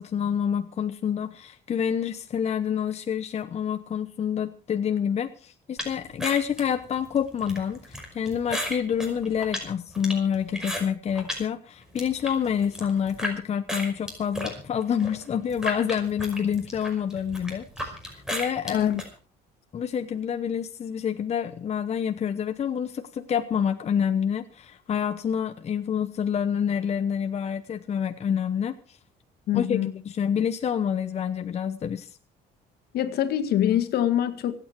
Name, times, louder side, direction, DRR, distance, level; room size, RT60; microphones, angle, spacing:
voice 1, 0.0-18.9 19.7-29.0 29.5-29.8 30.0-32.1, left 8 dB, 40° left, 1.0 m, -27 dB
sound 1, 5.8-11.4 11.8-13.3 13.7-19.1, equal, 5° right, 5.5 m, -34 dB
voice 2, 29.5-29.9 32.9-34.5, left 11 dB, 70° left, 1.9 m, -24 dB
25.5 x 9.1 x 4.6 m
cardioid pair, 110°, 17 cm